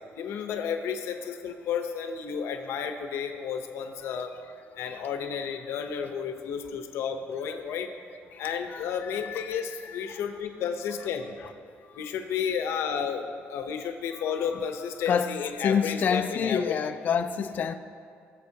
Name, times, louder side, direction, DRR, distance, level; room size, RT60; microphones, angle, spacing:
voice 1, 0.2-4.3 4.8-7.9 8.4-11.4 12.0-13.2 13.5-16.7, left 7 dB, 75° left, 6 dB, 0.8 m, -32 dB
voice 2, 8.7-10.2 11.4-11.5 14.3-14.6 15.1-17.7, left 7 dB, 40° left, 7 dB, 0.4 m, -29 dB
20.5 x 7.3 x 2.9 m, 2.3 s
cardioid pair, 165°, 5 cm